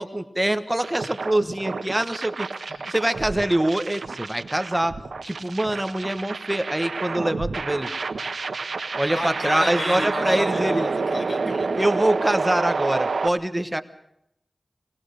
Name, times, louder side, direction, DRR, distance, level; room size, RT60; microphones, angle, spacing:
voice 1, 0.0-2.5 2.9-5.0 5.2-7.9 9.0-10.9 11.5-13.8, right 1 dB, 15° right, 9 dB, 1.2 m, -24 dB
sound 1, 0.8-13.3, right 4 dB, 90° right, 1.4 m, -29 dB
voice 2, 2.6-2.9 8.9-11.8, left 1 dB, 75° left, 3 dB, 5.9 m, -32 dB
20.5 x 20.0 x 6.5 m, 0.79 s
wide cardioid pair, 75°, 0 cm